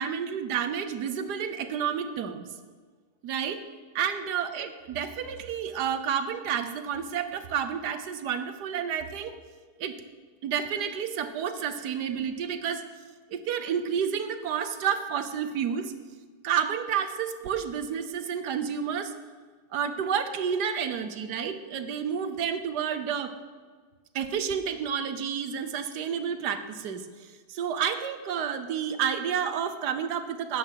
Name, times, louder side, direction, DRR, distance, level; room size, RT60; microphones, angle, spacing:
voice 1, 0.0-2.4 3.2-3.6 3.9-9.4 9.8-9.9 10.4-12.9 13.3-15.9 16.4-19.1 19.7-23.3 24.1-27.0 27.5-30.6, right 7 dB, 85° right, 10 dB, 1.5 m, -30 dB
13.0 x 9.1 x 5.7 m, 1.5 s
omnidirectional pair, 1.7 m